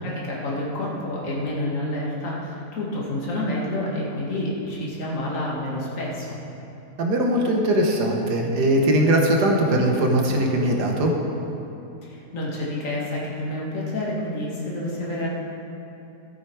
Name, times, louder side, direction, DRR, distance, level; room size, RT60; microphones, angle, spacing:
voice 1, 0.0-6.4 12.1-15.3, left 1 dB, 50° left, -5 dB, 2.3 m, -29 dB
voice 2, 7.0-11.1, right 1 dB, 80° right, 1 dB, 1.8 m, -20 dB
13.5 x 8.3 x 4.7 m, 2.9 s
omnidirectional pair, 1.7 m